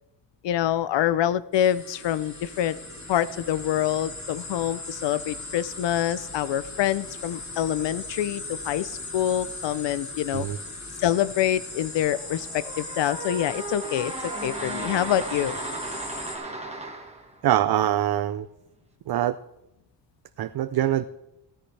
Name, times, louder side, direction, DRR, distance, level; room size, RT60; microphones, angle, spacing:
voice 1, 0.4-2.8 3.1-10.5 11.0-15.6, left 11 dB, 85° left, 17 dB, 0.6 m, -26 dB
sound 1, 1.5-16.4, left 2 dB, 40° left, 2.9 m, -38 dB
sound 2, 12.1-17.4, right 2 dB, 15° right, 1.4 m, -35 dB
voice 2, 17.4-18.5 19.1-19.4 20.4-21.1, right 12 dB, 60° right, 12 dB, 0.5 m, -24 dB
15.5 x 13.5 x 3.2 m, 0.88 s
wide cardioid pair, 165°, 42 cm